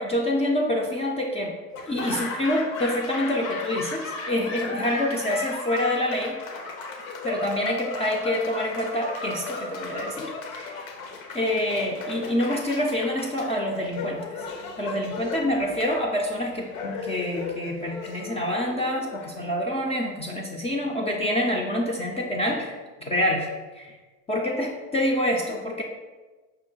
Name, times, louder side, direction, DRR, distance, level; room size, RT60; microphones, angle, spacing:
voice 1, 0.0-1.5 1.9-6.4 7.2-10.9 11.3-14.5 14.8-23.5 23.7-23.9 24.3-25.8, left 1 dB, 15° left, -1 dB, 0.4 m, -27 dB
Laughter / Applause, 1.7-19.8, left 3 dB, 80° left, 0.8 m, -36 dB
5.3 x 2.1 x 3.8 m, 1.3 s
hypercardioid pair, 90°, 40 cm